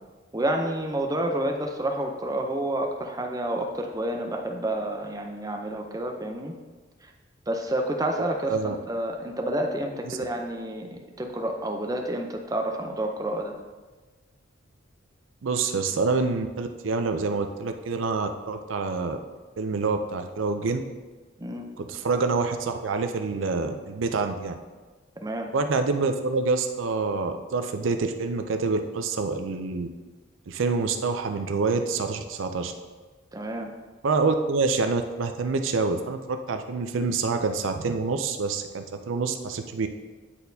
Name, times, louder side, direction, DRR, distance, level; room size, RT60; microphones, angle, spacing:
voice 1, 0.3-6.5 7.0-7.1 7.5-13.6 21.4-21.7 25.2-25.5 33.3-33.7, right 1 dB, 20° right, 3 dB, 0.5 m, -29 dB
voice 2, 15.4-19.2 19.6-20.8 21.8-24.5 25.5-29.9 30.5-32.7 34.0-39.9, right 4 dB, 80° right, 7 dB, 0.5 m, -27 dB
9.8 x 4.2 x 2.7 m, 1.3 s
head